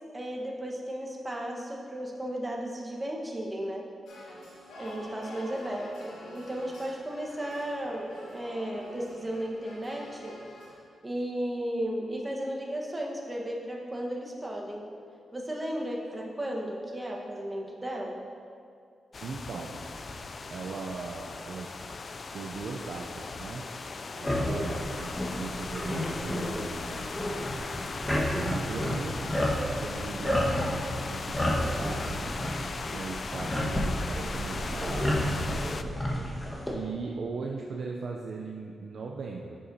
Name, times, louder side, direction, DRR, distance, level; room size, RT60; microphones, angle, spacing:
voice 1, 0.1-3.9 4.8-10.3 11.0-14.9 15.3-18.2, right 1 dB, 25° right, -1 dB, 1.2 m, -34 dB
sound 1, 4.1-10.8, left 1 dB, 90° left, 1.2 m, -47 dB
sound 2, 19.1-35.8, left 4 dB, 55° left, 0.3 m, -38 dB
voice 2, 19.2-19.8 20.1-20.2 20.5-21.7 22.3-23.7 24.1-27.2 28.0-29.2 29.6-32.4 32.9-35.9 36.7-39.6, right 4 dB, 70° right, 0 dB, 0.4 m, -39 dB
sound 3, 24.2-36.7, equal, 25° left, 1.4 m, -31 dB
8.4 x 6.2 x 2.7 m, 2.3 s
supercardioid pair, 50°, 0 cm